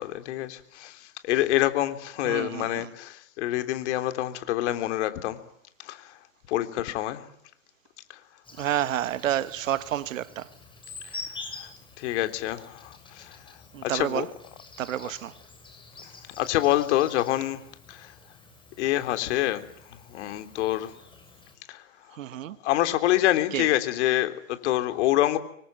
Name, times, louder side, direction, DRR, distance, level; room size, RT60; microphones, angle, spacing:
voice 1, 0.0-5.4 5.8-6.1 6.5-7.3 11.0-11.2 11.6-11.7 12.0-13.4 13.8-14.3 15.0-15.1 16.4-17.6 17.9-18.1 18.8-19.6 20.1-20.9 21.7-21.8 22.6-25.4, left 14 dB, 55° left, 3.5 m, -26 dB
voice 2, 2.2-2.9 8.6-10.5 13.7-14.3 14.8-15.3 22.2-22.6 23.5-23.7, right 11 dB, 70° right, 1.5 m, -29 dB
Insect, 8.4-21.6, left 3 dB, 10° left, 7.4 m, -47 dB
26.0 x 24.5 x 9.3 m
hypercardioid pair, 115°, 41 cm